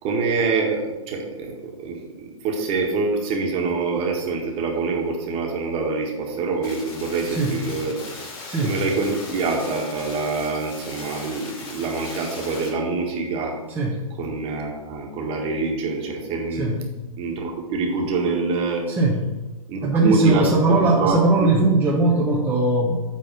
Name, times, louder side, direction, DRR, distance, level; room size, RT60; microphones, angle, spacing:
voice 1, 0.0-8.0 8.6-13.5 14.2-16.7 17.2-18.8 19.7-21.7, right 4 dB, 30° right, 0 dB, 2.0 m, -25 dB
sound 1, 6.6-12.7, left 3 dB, 45° left, 2.9 m, -38 dB
voice 2, 7.3-7.6 8.5-8.8 13.7-14.1 16.6-16.8 18.9-19.2 19.8-23.0, right 2 dB, 10° right, -5 dB, 1.3 m, -20 dB
9.0 x 4.1 x 6.8 m, 1.1 s
hypercardioid pair, 120°, 18 cm